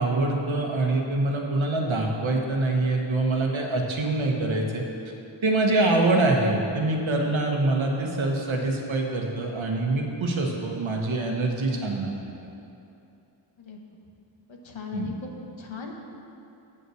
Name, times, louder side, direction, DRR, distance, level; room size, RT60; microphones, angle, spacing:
voice 1, 0.0-4.8 5.4-12.1 14.9-15.1, right 2 dB, 80° right, 1 dB, 1.3 m, -25 dB
voice 2, 14.5-15.9, left 4 dB, 80° left, 1 dB, 1.3 m, -38 dB
8.3 x 5.6 x 7.7 m, 2.7 s
wide cardioid pair, 90°, 46 cm